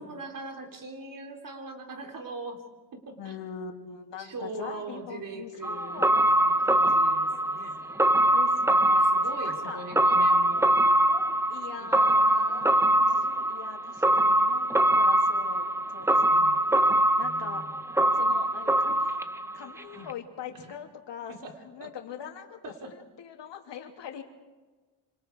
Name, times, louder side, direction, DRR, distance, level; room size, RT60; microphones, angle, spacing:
voice 1, 0.0-2.6 2.9-3.3 4.2-7.9 9.0-10.7 16.2-16.7 17.2-17.8 19.9-20.1 20.5-20.8 21.3-21.5 21.8-21.9 22.6-22.9, right 2 dB, 45° right, 3 dB, 3.6 m, -41 dB
voice 2, 3.2-6.1 7.8-9.1 9.4-9.9 11.5-16.5 17.2-17.6 18.1-19.2 19.5-21.3 21.6-24.2, left 8 dB, 65° left, 3 dB, 3.0 m, -43 dB
sound 1, 5.6-19.8 20.1-20.2, right 1 dB, 5° right, 0.9 m, -23 dB
26.5 x 26.5 x 4.7 m, 1.3 s
cardioid pair, 120°, 45 cm